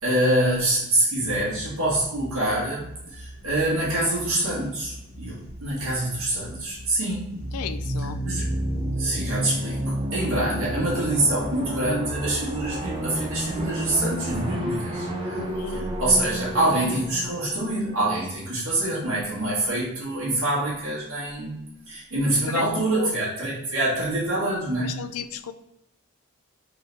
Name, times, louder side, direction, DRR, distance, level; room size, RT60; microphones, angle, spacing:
voice 1, 0.0-7.4 8.2-8.5 9.0-24.9, right 1 dB, 70° right, -7 dB, 1.7 m, -26 dB
sound 1, 1.2-14.1, equal, 25° left, 1.2 m, -43 dB
sound 2, 7.3-18.9, right 1 dB, 20° right, 0.7 m, -30 dB
voice 2, 7.5-8.2 15.3-15.9 22.5-22.6 22.9-23.1 24.8-25.5, left 7 dB, 80° left, 12 dB, 0.4 m, -33 dB
3.9 x 3.4 x 4.0 m, 0.86 s
head